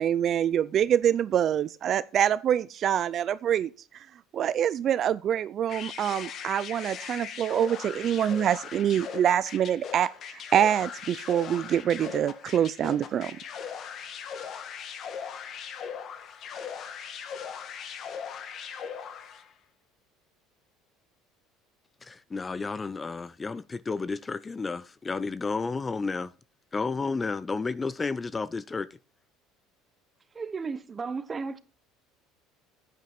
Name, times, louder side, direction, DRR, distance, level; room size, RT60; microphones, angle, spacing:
voice 1, 0.0-3.7 4.3-13.4, right 9 dB, 45° right, 0.4 m, -25 dB
sound 1, 5.7-19.5, left 7 dB, 45° left, 1.5 m, -39 dB
voice 2, 22.0-26.3 26.7-28.9, left 4 dB, 20° left, 0.4 m, -31 dB
voice 3, 30.3-31.6, right 4 dB, 25° right, 1.0 m, -34 dB
10.5 x 9.4 x 4.3 m
cardioid pair, 125°, 0 cm